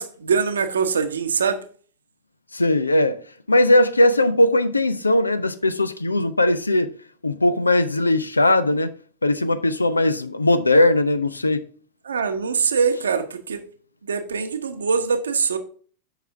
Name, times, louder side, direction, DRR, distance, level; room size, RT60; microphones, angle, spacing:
voice 1, 0.0-1.6 12.0-13.6 14.0-15.6, right 5 dB, 70° right, 0.9 m, -23 dB
voice 2, 2.5-3.2 3.5-6.9 7.2-8.9 9.2-11.6, left 1 dB, 80° left, 0.6 m, -19 dB
8.1 x 5.9 x 3.5 m
figure-of-eight pair, 90°, 0 cm